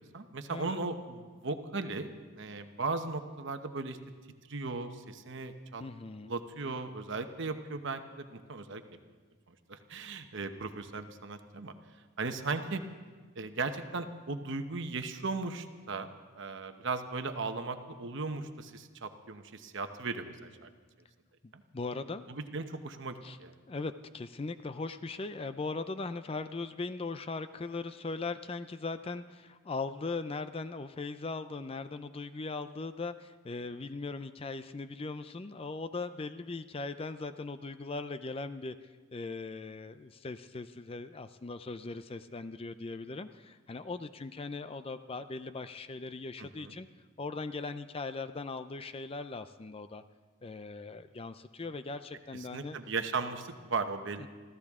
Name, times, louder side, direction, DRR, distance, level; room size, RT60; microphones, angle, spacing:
voice 1, 0.1-4.0 4.5-5.8 6.2-8.8 9.7-11.7 12.2-12.8 13.4-16.1 16.4-20.3 20.6-20.7 21.5-21.6 22.3-23.5 46.4-46.8 52.3-54.3, right 3 dB, 55° right, 8 dB, 1.0 m, -37 dB
voice 2, 5.8-6.3 21.4-22.2 23.2-23.4 23.7-38.8 39.1-46.9 47.2-50.0 50.4-52.8 54.2-54.3, left 3 dB, 25° left, 11 dB, 0.4 m, -39 dB
25.0 x 15.0 x 3.7 m, 1.4 s
head